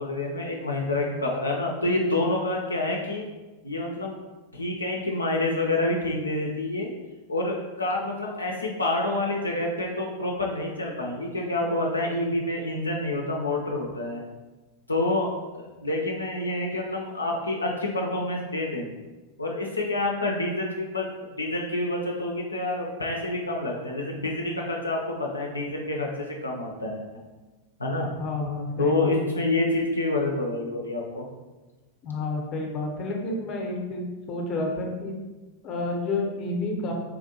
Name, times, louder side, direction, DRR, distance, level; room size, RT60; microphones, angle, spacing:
voice 1, 0.0-3.3 3.6-4.2 4.5-6.9 7.3-14.2 14.9-19.0 19.4-21.1 21.4-27.0 27.8-28.1 28.8-31.2, left 2 dB, 80° left, -1 dB, 0.4 m, -28 dB
voice 2, 28.2-29.2 32.0-35.2 35.6-36.9, left 2 dB, 35° left, 1 dB, 0.7 m, -30 dB
4.2 x 2.5 x 2.7 m, 1.2 s
figure-of-eight pair, 90°, 0 cm